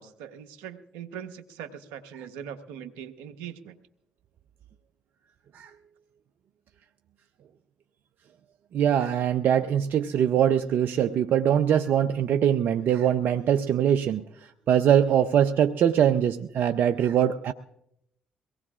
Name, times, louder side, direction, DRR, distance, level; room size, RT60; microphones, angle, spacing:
voice 1, 0.0-3.8, right 8 dB, 85° right, 9 dB, 1.1 m, -41 dB
voice 2, 8.7-14.2 14.7-17.5, right 9 dB, 65° right, 8 dB, 0.6 m, -22 dB
23.0 x 18.5 x 2.5 m, 0.77 s
hypercardioid pair, 50°, 4 cm